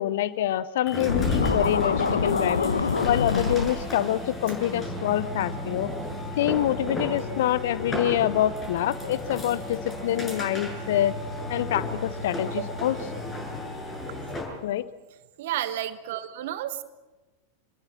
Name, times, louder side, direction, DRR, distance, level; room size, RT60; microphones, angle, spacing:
voice 1, 0.0-2.7 3.1-5.9 6.4-11.1 11.5-13.0 14.6-14.9, left 12 dB, 55° left, 16 dB, 0.8 m, -26 dB
sound 1, 0.9-14.6, left 1 dB, 20° left, 7.7 m, -33 dB
Scratching (performance technique), 1.1-3.7, left 5 dB, 75° left, 1.5 m, -25 dB
voice 2, 15.4-16.8, right 12 dB, 55° right, 11 dB, 1.4 m, -31 dB
27.0 x 21.5 x 6.3 m, 1.1 s
figure-of-eight pair, 90°, 0 cm